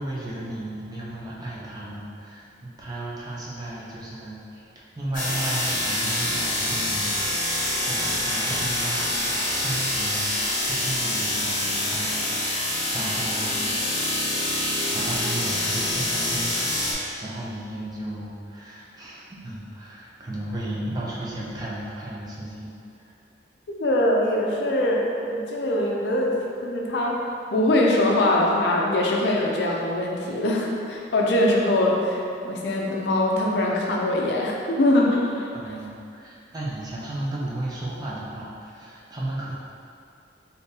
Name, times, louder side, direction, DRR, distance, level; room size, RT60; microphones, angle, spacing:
voice 1, 0.0-9.1 9.6-10.3 10.6-13.6 13.9-14.0 14.9-22.7 23.0-23.1 35.5-39.5, right 1 dB, 20° right, -6 dB, 0.5 m, -34 dB
sound 1, 5.1-16.9, left 1 dB, 45° left, 0.8 m, -26 dB
voice 2, 23.7-27.2 27.5-35.5, left 1 dB, 60° left, -2 dB, 0.4 m, -22 dB
3.7 x 2.7 x 2.7 m, 2.4 s
head